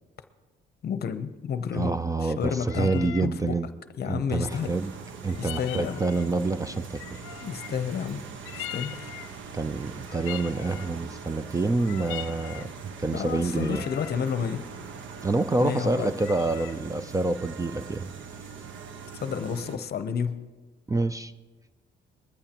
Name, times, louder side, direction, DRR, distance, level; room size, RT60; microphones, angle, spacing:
voice 1, 0.8-1.9 2.2-3.6 4.0-4.7 5.4-6.0 7.4-8.2 8.5-9.1 13.1-14.6 15.6-16.1 19.2-20.4, left 7 dB, 55° left, 11 dB, 0.7 m, -30 dB
voice 2, 1.7-3.7 4.0-4.9 5.2-7.2 9.5-12.7 13.0-13.8 15.2-18.1 20.9-21.3, right 3 dB, 15° right, 14 dB, 0.4 m, -27 dB
sound 1, 2.6-3.3 5.3-6.4 7.0-7.9 8.4-9.4 10.1-11.0 11.7-12.7 13.4-14.2 16.1-16.8, left 15 dB, 85° left, 0.4 m, -41 dB
sound 2, 4.5-19.8, right 5 dB, 75° right, 1.2 m, -42 dB
20.5 x 14.0 x 2.9 m, 1.3 s
cardioid pair, 90°, 20 cm